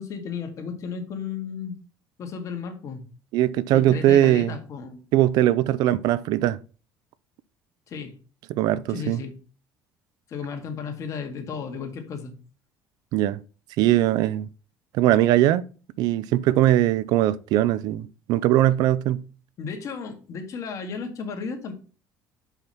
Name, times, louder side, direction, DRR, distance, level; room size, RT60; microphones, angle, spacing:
voice 1, 0.0-1.8 2.2-3.0 3.7-5.0 7.9-8.2 8.9-9.4 10.3-12.3 19.6-21.7, left 6 dB, 50° left, 1.9 m, -34 dB
voice 2, 3.3-4.5 5.1-6.6 8.5-9.2 13.1-13.4 13.8-14.5 15.0-15.6 16.0-19.2, right 13 dB, 70° right, 0.5 m, -20 dB
5.9 x 5.7 x 5.4 m
cardioid pair, 115°, 7 cm